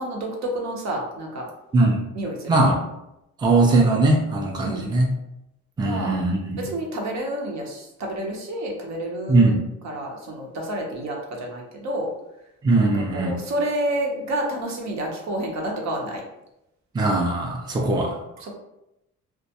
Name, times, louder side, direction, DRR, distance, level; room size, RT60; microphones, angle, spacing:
voice 1, 0.0-1.5 2.1-2.7 4.6-4.9 5.8-6.2 6.6-9.6 9.8-12.1 12.8-16.2 17.8-18.1 18.4-18.5, right 1 dB, 65° right, 0 dB, 0.7 m, -29 dB
voice 2, 1.7-2.1 2.5-2.8 3.4-5.1 5.8-6.7 9.3-9.7 12.6-13.3 16.9-18.2, right 2 dB, 15° right, 0 dB, 0.4 m, -20 dB
2.2 x 2.1 x 2.8 m, 0.87 s
cardioid pair, 90°, 30 cm